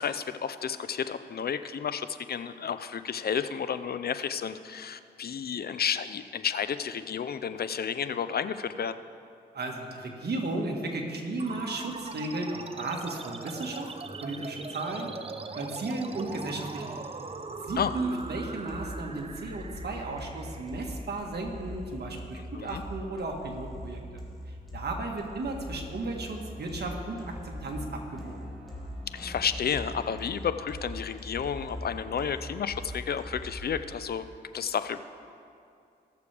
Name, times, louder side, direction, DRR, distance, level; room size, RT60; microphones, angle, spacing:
voice 1, 0.0-8.9 17.8-17.9 22.3-22.8 29.1-34.2 34.5-35.0, left 7 dB, 60° left, 12 dB, 0.5 m, -31 dB
voice 2, 9.5-13.9 14.2-15.1 15.5-17.0 17.6-24.0 24.5-28.4, right 2 dB, 65° right, 1 dB, 1.6 m, -34 dB
sound 1, 11.4-22.3, right 3 dB, 30° right, 0.6 m, -41 dB
sound 2, 17.7-33.7, equal, ahead, 2.8 m, -41 dB
20.0 x 6.7 x 3.4 m, 2.5 s
cardioid pair, 65°, 18 cm